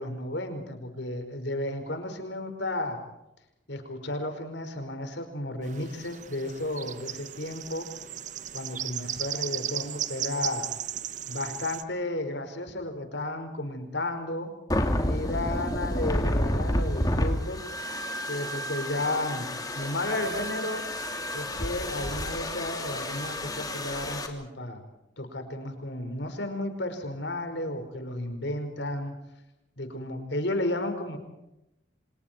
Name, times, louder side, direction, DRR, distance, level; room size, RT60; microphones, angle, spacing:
voice 1, 0.0-3.0 3.7-7.9 8.5-10.7 11.3-14.5 15.0-17.6 18.3-20.8 21.3-24.8 25.2-29.1 29.8-31.2, left 1 dB, 80° left, 7 dB, 4.9 m, -33 dB
sound 1, 5.6-11.8, right 10 dB, 45° right, 1.1 m, -36 dB
sound 2, 14.7-24.3, left 1 dB, 20° left, 2.9 m, -30 dB
29.5 x 26.5 x 4.5 m, 0.91 s
head